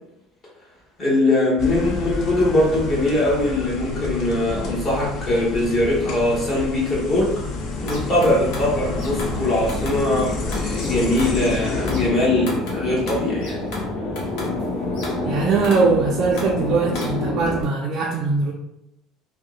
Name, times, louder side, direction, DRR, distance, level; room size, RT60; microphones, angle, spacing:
voice 1, 1.0-7.3 7.8-13.6, left 1 dB, 25° left, -6 dB, 1.0 m, -21 dB
sound 1, 1.6-12.1, left 3 dB, 50° left, 0.4 m, -30 dB
sound 2, 7.5-17.6, left 2 dB, 75° left, 0.8 m, -28 dB
voice 2, 15.2-18.5, right 4 dB, 40° right, -3 dB, 0.3 m, -21 dB
2.8 x 2.0 x 2.4 m, 0.87 s
cardioid pair, 150°, 0 cm